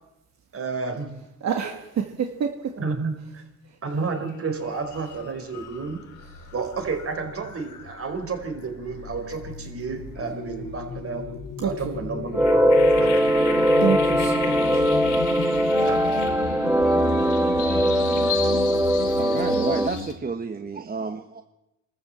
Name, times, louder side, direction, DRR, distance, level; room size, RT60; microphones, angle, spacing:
voice 1, 0.5-1.1 2.8-3.4 3.8-6.0 6.5-11.2 11.6-13.4 15.8-16.0, right 4 dB, 50° right, 6 dB, 4.6 m, -31 dB
voice 2, 1.4-2.8 11.6-12.0 13.8-14.8, right 7 dB, 65° right, 3 dB, 2.1 m, -28 dB
sound 1, 4.1-4.3 4.7-20.1, left 5 dB, 90° left, 3.1 m, -34 dB
sound 2, 12.3-19.9, equal, 10° right, 1.2 m, -21 dB
voice 3, 19.1-21.4, right 4 dB, 30° right, 6 dB, 1.5 m, -30 dB
25.0 x 14.0 x 7.6 m, 0.93 s
cardioid pair, 90°, 30 cm